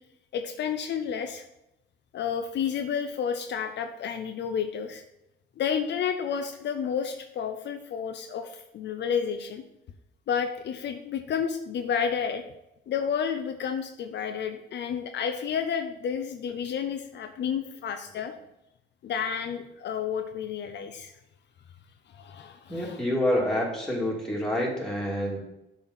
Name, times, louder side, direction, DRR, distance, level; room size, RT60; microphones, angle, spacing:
voice 1, 0.3-1.5 2.1-5.0 5.6-9.6 10.3-12.4 12.9-18.3 19.0-21.1 22.1-23.0, left 7 dB, 60° left, 7 dB, 0.6 m, -31 dB
voice 2, 22.7-25.4, left 1 dB, 5° left, -3 dB, 2.5 m, -27 dB
7.0 x 4.1 x 5.8 m, 0.88 s
cardioid pair, 90°, 20 cm